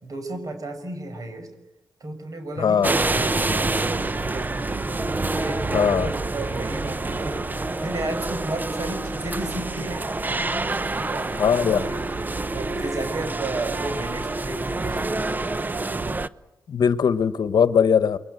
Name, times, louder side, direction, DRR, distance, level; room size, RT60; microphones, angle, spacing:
voice 1, 0.0-1.5 2.0-4.6 5.2-15.1, right 2 dB, 50° right, 8 dB, 6.5 m, -34 dB
voice 2, 2.6-2.9 5.7-6.1 11.4-11.9 16.7-18.2, left 7 dB, 65° left, 13 dB, 1.2 m, -20 dB
sound 1, 2.8-16.3, right 2 dB, 25° right, 0.9 m, -27 dB
29.5 x 22.0 x 8.1 m, 0.92 s
cardioid pair, 80°, 7 cm